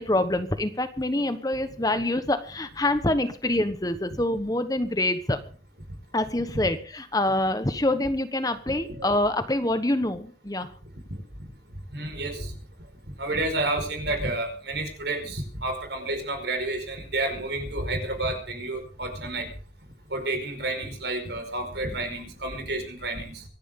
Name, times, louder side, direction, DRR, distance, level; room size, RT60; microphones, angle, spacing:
voice 1, 0.0-5.4 6.1-10.7, left 1 dB, 20° left, 10 dB, 1.2 m, -26 dB
voice 2, 11.9-12.5 13.2-19.5 20.1-23.4, right 2 dB, 70° right, 6 dB, 4.9 m, -30 dB
25.0 x 11.0 x 3.8 m, 0.39 s
head